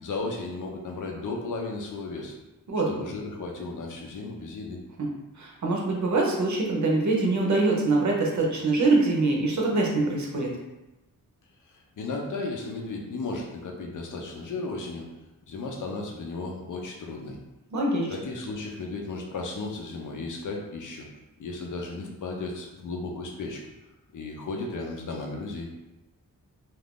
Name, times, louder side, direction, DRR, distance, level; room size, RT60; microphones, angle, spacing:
voice 1, 0.0-2.3 2.9-4.8 11.7-15.1 15.5-17.4 18.1-21.1 21.4-23.6 24.1-25.7, left 3 dB, 60° left, 1 dB, 0.6 m, -34 dB
voice 2, 5.4-10.5 17.7-18.1, right 2 dB, 55° right, -1 dB, 0.7 m, -24 dB
2.5 x 2.5 x 3.5 m, 1.0 s
wide cardioid pair, 150°, 35 cm